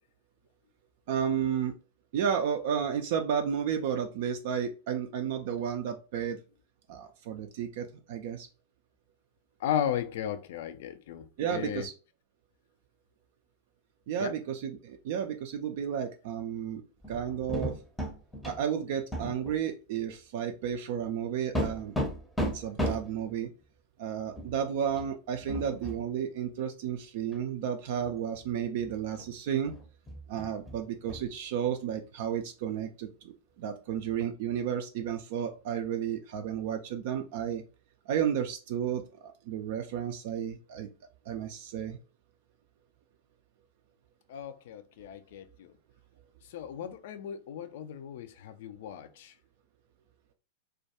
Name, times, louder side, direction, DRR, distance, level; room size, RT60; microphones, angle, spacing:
voice 1, 1.1-1.7 2.1-6.4 6.9-8.5 11.4-11.9 14.1-16.8 17.1-17.7 18.4-22.0 22.4-23.5 24.0-29.7 30.3-37.6 38.1-40.9 41.3-42.0, right 8 dB, 60° right, 0.3 m, -32 dB
voice 2, 9.6-11.9 14.2-14.4 44.3-45.7 46.5-49.3, left 10 dB, 60° left, 0.3 m, -35 dB
sound 1, 17.0-18.6 19.1-19.6 20.0-20.1 21.5-23.2 24.4-24.6 24.9-25.1 25.4-26.0 27.3-27.4 28.0-28.4 28.8-29.3 29.6-31.3 34.2-34.3, equal, 5° left, 0.6 m, -35 dB
2.2 x 2.2 x 2.8 m
figure-of-eight pair, 90°, 0 cm